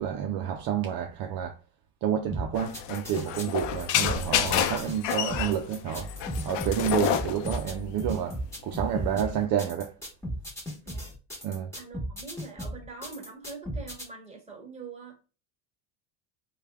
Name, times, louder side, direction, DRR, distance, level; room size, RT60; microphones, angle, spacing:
voice 1, 0.0-1.6 2.0-6.1 6.4-8.4 8.6-9.9 11.4-11.7, right 9 dB, 55° right, 0.5 m, -29 dB
sound 1, 2.3-14.0, equal, 5° left, 1.2 m, -36 dB
sound 2, 2.5-9.4, left 9 dB, 70° left, 0.6 m, -30 dB
voice 2, 11.7-15.2, right 4 dB, 15° right, 1.3 m, -44 dB
3.2 x 2.3 x 3.3 m
supercardioid pair, 100°, 45 cm